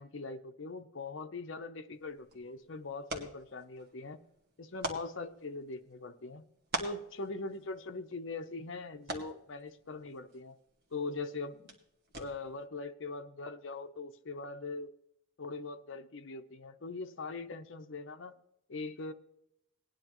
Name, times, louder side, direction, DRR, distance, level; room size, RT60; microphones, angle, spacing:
voice 1, 0.0-4.2 4.6-6.4 6.8-10.5 10.9-11.7 12.1-14.9 15.4-18.3 18.7-19.1, left 3 dB, 60° left, 6 dB, 0.7 m, -41 dB
baseball in mit, 1.9-12.7, right 2 dB, 50° right, 1.8 m, -46 dB
18.5 x 10.0 x 3.0 m, 0.79 s
head